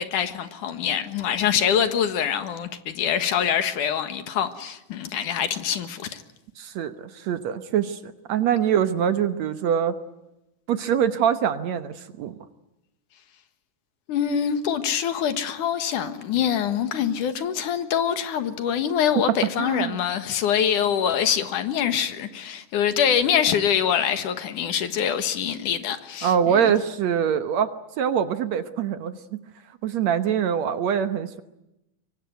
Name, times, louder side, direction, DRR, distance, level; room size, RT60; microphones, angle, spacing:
voice 1, 0.0-6.2 14.1-26.7, left 8 dB, 70° left, 3.0 m, -24 dB
voice 2, 6.6-10.0 10.7-12.4 19.6-20.0 26.2-29.4 29.8-31.4, right 8 dB, 65° right, 2.1 m, -24 dB
24.0 x 24.0 x 9.4 m
omnidirectional pair, 3.8 m